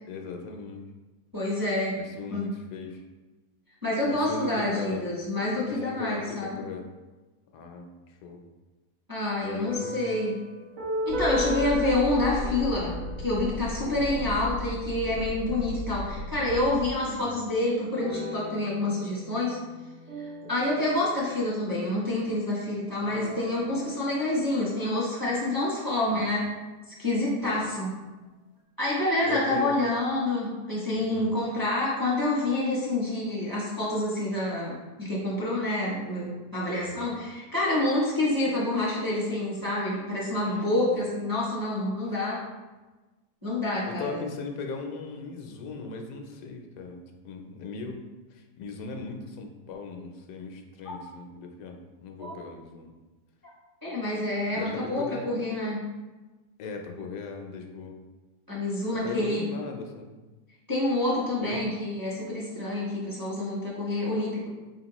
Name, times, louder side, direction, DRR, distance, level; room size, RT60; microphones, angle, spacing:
voice 1, 0.0-0.8 1.9-3.0 4.0-5.0 5.6-6.9 7.5-8.4 9.4-10.2 13.9-14.4 17.0-17.4 26.1-26.3 27.4-27.7 29.2-29.8 31.0-31.3 36.8-37.1 40.5-40.6 43.9-48.0 48.3-52.9 54.5-55.6 56.6-57.9 58.9-60.1 61.4-61.6, left 4 dB, 85° left, 3 dB, 1.2 m, -39 dB
voice 2, 1.3-1.9 2.3-2.5 3.8-6.6 9.1-10.3 11.0-19.6 20.2-26.4 26.9-27.9 28.8-42.4 43.4-44.2 52.2-52.4 53.8-55.8 58.5-59.6 60.7-64.5, left 1 dB, 15° right, -7 dB, 0.8 m, -28 dB
sound 1, 9.6-15.6 17.9-21.8 23.0-25.7, left 1 dB, 60° right, 1.3 m, -37 dB
sound 2, 11.1-16.9, left 2 dB, 65° left, 0.8 m, -35 dB
4.4 x 3.5 x 2.9 m, 1.2 s
omnidirectional pair, 1.7 m